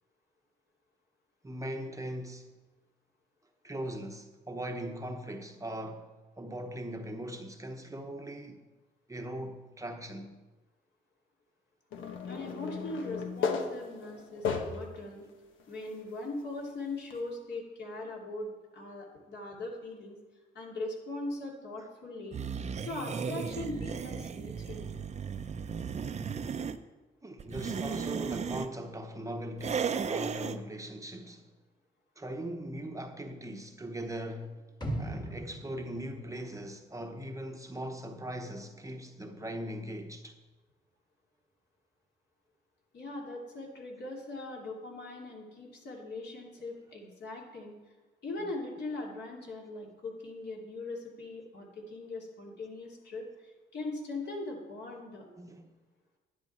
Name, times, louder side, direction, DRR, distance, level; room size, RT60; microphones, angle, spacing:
voice 1, 1.4-2.5 3.6-6.1 6.4-8.6 9.1-10.4 27.2-31.5 32.2-34.7 35.0-40.4 55.3-55.7, right 1 dB, 15° right, 1.0 m, -40 dB
sound 1, 11.9-15.0 15.6-15.7 17.1-17.2, left 5 dB, 75° left, 1.2 m, -34 dB
voice 2, 12.2-15.2 15.7-20.2 20.5-22.4 22.8-24.9 42.9-47.8 48.2-55.3, left 2 dB, 60° left, 3.1 m, -40 dB
sound 2, 22.3-26.8 27.4-28.7 29.6-30.6, right 6 dB, 35° right, 0.6 m, -35 dB
sound 3, 34.8-37.0 37.3-37.4, right 1 dB, 20° left, 1.8 m, -39 dB
10.5 x 10.0 x 4.4 m
cardioid pair, 90°, 20 cm